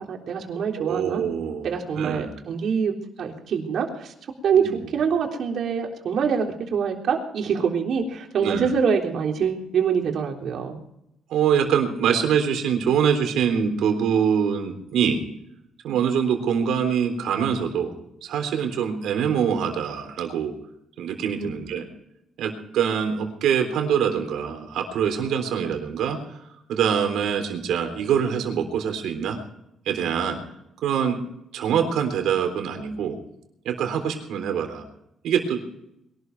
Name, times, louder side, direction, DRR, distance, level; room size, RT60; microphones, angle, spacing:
voice 1, 0.0-1.2 1.6-4.1 4.4-10.8 21.4-21.8, right 6 dB, 65° right, 2 dB, 3.6 m, -25 dB
voice 2, 0.8-1.7 1.9-2.3 4.5-4.7 8.4-8.7 11.3-15.2 15.8-17.9 18.2-20.5 21.0-21.9 22.4-26.4 26.7-29.4 29.9-30.4 30.8-31.2 31.5-33.2 33.7-34.8 35.2-35.6, right 7 dB, 80° right, 5 dB, 3.6 m, -24 dB
22.5 x 12.5 x 4.7 m, 0.80 s
cardioid pair, 90°, 0 cm